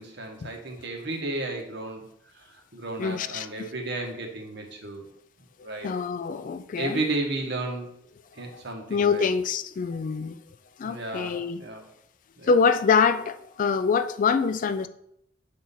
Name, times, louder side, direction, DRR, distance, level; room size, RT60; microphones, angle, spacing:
voice 1, 0.0-2.0 2.3-5.0 5.6-5.9 6.8-7.9 8.3-9.3 10.8-11.8 12.4-12.5, right 2 dB, 65° right, 1.2 m, -33 dB
voice 2, 3.0-3.7 5.8-7.0 8.5-8.6 8.9-10.3 10.8-11.6 12.5-14.9, left 5 dB, 45° left, 0.3 m, -25 dB
6.2 x 3.8 x 4.1 m
head